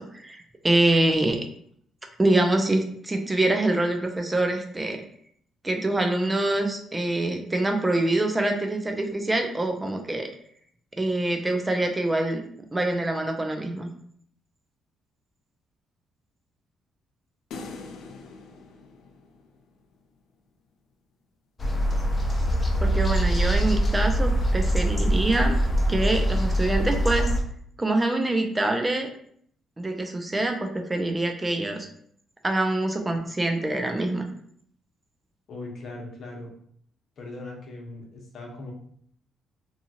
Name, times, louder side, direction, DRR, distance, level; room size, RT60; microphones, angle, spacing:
voice 1, 0.0-1.4 2.2-5.0 5.6-10.3 11.0-12.4 12.7-13.9 22.8-25.6 25.9-27.3 27.8-29.1 29.8-31.9 32.4-34.3, right 2 dB, 20° right, 4 dB, 0.4 m, -25 dB
sound 1, 17.5-19.9, left 3 dB, 80° left, 0.4 m, -42 dB
sound 2, 21.6-27.4, right 1 dB, 30° left, 0.6 m, -23 dB
voice 2, 35.5-36.5 37.2-38.7, left 2 dB, 60° left, -1 dB, 0.8 m, -39 dB
2.8 x 2.3 x 2.7 m, 0.63 s
cardioid pair, 90°, 0 cm